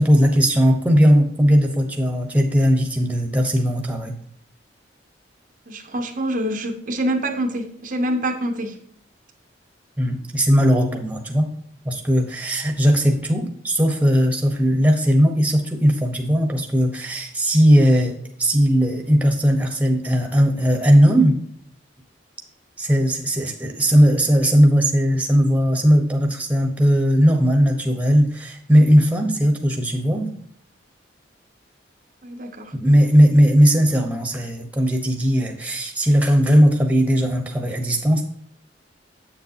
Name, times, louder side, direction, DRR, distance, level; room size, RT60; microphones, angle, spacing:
voice 1, 0.0-4.2 10.0-11.5 11.8-21.4 22.8-30.3 32.7-38.2, equal, 10° right, 3 dB, 1.0 m, -18 dB
voice 2, 5.7-8.8 32.2-32.7, right 1 dB, 45° right, 4 dB, 0.7 m, -26 dB
8.0 x 6.7 x 2.8 m, 0.64 s
head